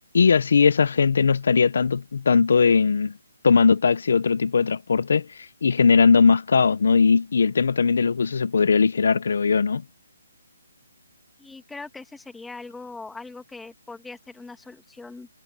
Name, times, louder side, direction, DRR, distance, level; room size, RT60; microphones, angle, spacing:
voice 1, 0.1-3.1 3.4-9.8, left 5 dB, 60° left, 0.8 m, -19 dB
voice 2, 11.4-15.3, left 3 dB, 5° left, 2.2 m, -41 dB
hypercardioid pair, 170°, 0 cm